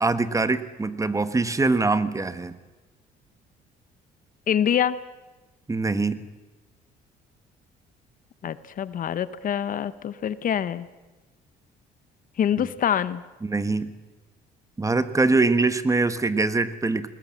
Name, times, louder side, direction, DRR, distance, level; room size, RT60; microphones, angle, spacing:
voice 1, 0.0-2.5 5.7-6.2 12.6-12.7 13.4-13.9 14.8-17.1, right 3 dB, 20° right, 13 dB, 1.3 m, -23 dB
voice 2, 4.5-5.0 8.4-10.9 12.4-13.2, left 9 dB, 50° left, 15 dB, 0.9 m, -25 dB
20.5 x 19.5 x 7.5 m, 1.2 s
cardioid pair, 100°, 18 cm